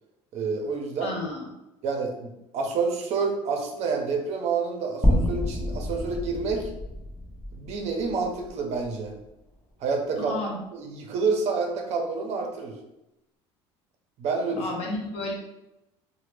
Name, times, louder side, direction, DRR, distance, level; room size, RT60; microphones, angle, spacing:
voice 1, 0.3-1.1 1.8-6.7 7.5-9.1 9.8-10.4 10.7-12.8 14.2-14.7, right 4 dB, 55° right, 2 dB, 0.5 m, -28 dB
voice 2, 1.0-1.5 10.2-10.6 14.5-15.3, left 2 dB, 55° left, -1 dB, 0.8 m, -32 dB
sound 1, 5.0-9.3, left 1 dB, 15° left, 0.6 m, -28 dB
2.1 x 2.0 x 3.1 m, 0.90 s
supercardioid pair, 85°, 13 cm